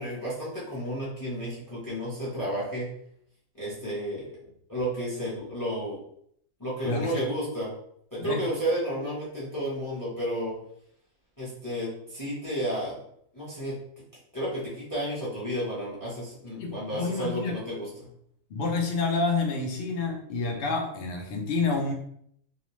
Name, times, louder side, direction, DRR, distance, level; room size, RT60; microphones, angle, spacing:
voice 1, 0.0-2.9 3.5-4.3 4.7-6.0 6.6-7.7 8.1-10.6 11.4-13.0 13.3-13.8 14.3-18.1, equal, 20° left, -8 dB, 0.7 m, -32 dB
voice 2, 6.8-7.3 8.2-8.4 16.6-17.6 18.5-21.9, left 3 dB, 65° left, 1 dB, 0.5 m, -29 dB
2.4 x 2.1 x 3.0 m, 0.70 s
omnidirectional pair, 1.5 m